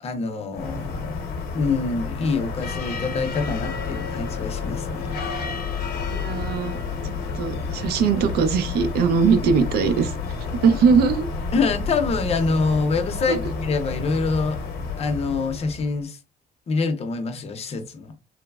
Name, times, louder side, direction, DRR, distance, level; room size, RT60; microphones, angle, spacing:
voice 1, 0.0-1.0 1.5-5.2 11.5-14.6 15.0-16.2 16.7-18.1, left 4 dB, 35° left, 0.6 m, -25 dB
palafrugell campanes, 0.5-16.0, left 4 dB, 75° left, 0.8 m, -30 dB
voice 2, 6.1-6.8 7.0-10.1 10.5-11.3 13.3-13.4, right 6 dB, 70° right, 0.5 m, -21 dB
3.1 x 2.0 x 2.3 m
cardioid pair, 110°, 17 cm